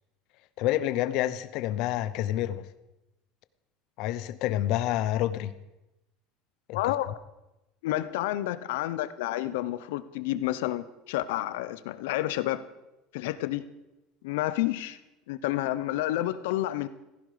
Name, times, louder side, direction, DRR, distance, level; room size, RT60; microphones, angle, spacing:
voice 1, 0.6-2.7 4.0-5.5 6.7-6.9, left 13 dB, 50° left, 14 dB, 0.8 m, -28 dB
voice 2, 6.7-7.2 7.8-12.6 13.1-13.6 14.2-15.0 15.3-16.9, left 15 dB, 85° left, 14 dB, 0.9 m, -30 dB
15.5 x 15.5 x 5.1 m, 0.96 s
cardioid pair, 175°, 0 cm